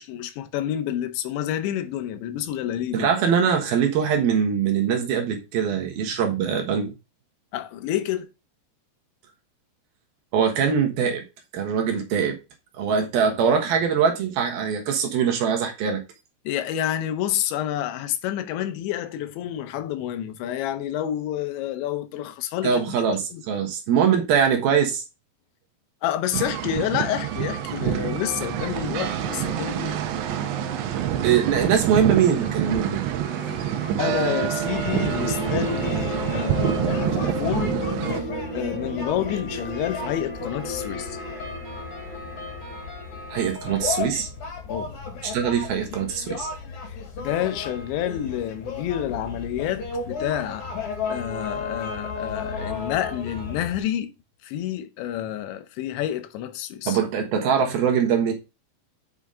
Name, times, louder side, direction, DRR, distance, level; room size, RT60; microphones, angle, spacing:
voice 1, 0.0-3.1 7.5-8.3 16.5-23.0 23.3-23.4 26.0-30.0 33.5-33.6 34.0-37.8 38.5-41.2 44.7-45.0 46.8-50.7 51.1-54.1 54.4-57.0, left 11 dB, 85° left, 3.2 m, -29 dB
voice 2, 2.9-6.9 10.3-11.2 11.5-12.4 12.8-16.0 22.6-25.0 31.2-33.0 43.3-44.3 45.2-46.5 56.9-58.3, right 7 dB, 65° right, 2.9 m, -22 dB
sound 1, 26.3-38.2, right 11 dB, 85° right, 3.2 m, -27 dB
sound 2, 26.6-43.5, equal, 25° right, 1.4 m, -35 dB
sound 3, 34.7-53.8, left 4 dB, 50° left, 2.6 m, -34 dB
8.0 x 5.9 x 3.7 m
omnidirectional pair, 5.1 m